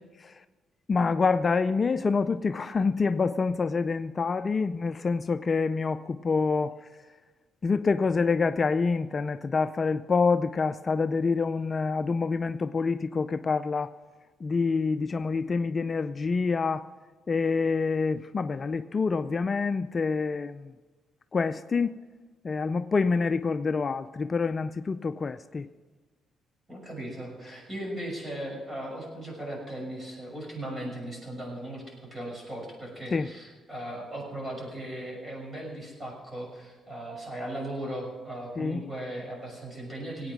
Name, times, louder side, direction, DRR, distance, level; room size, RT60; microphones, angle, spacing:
voice 1, 0.9-6.7 7.6-13.9 14.4-16.9 17.3-20.7 21.3-22.0 22.4-25.7 33.1-33.3 38.6-38.8, left 4 dB, 35° left, 11 dB, 0.4 m, -27 dB
voice 2, 26.7-40.3, right 1 dB, 25° right, -1 dB, 6.2 m, -37 dB
18.5 x 8.9 x 6.1 m, 1.3 s
cardioid pair, 90°, 0 cm